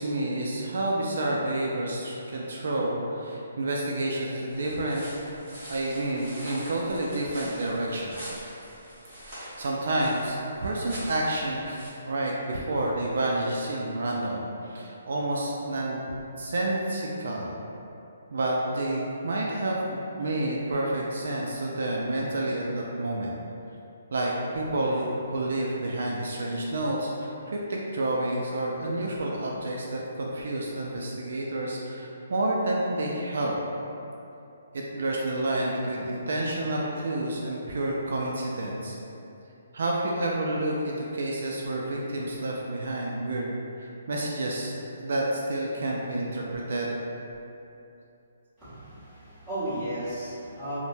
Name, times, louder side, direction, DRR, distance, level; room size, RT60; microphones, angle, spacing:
voice 1, 0.0-5.0 5.7-8.3 9.2-11.8 12.0-16.0 16.4-17.5 18.3-23.4 24.1-33.6 34.7-39.0 39.7-46.9, right 1 dB, 65° right, -2 dB, 0.3 m, -29 dB
sound 1, 4.5-11.9, equal, 20° right, 0.9 m, -44 dB
voice 2, 48.6-50.8, right 1 dB, 5° right, -19 dB, 1.1 m, -34 dB
3.2 x 2.1 x 2.6 m, 2.8 s
hypercardioid pair, 170°, 0 cm